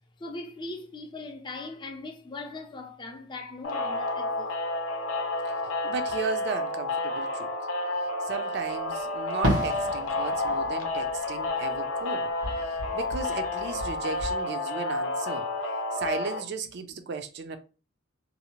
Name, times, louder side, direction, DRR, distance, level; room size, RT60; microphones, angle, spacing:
voice 1, 0.2-4.5, left 2 dB, 20° left, 0.4 m, -40 dB
sound 1, 3.6-16.4, left 2 dB, 70° left, 0.6 m, -30 dB
voice 2, 5.8-7.5 8.3-12.3 12.6-15.5 15.9-17.6, right 5 dB, 55° right, 0.4 m, -35 dB
Fireworks, 9.4-12.1 12.4-14.3, equal, 80° right, 1.1 m, -33 dB
2.6 x 2.0 x 2.8 m
head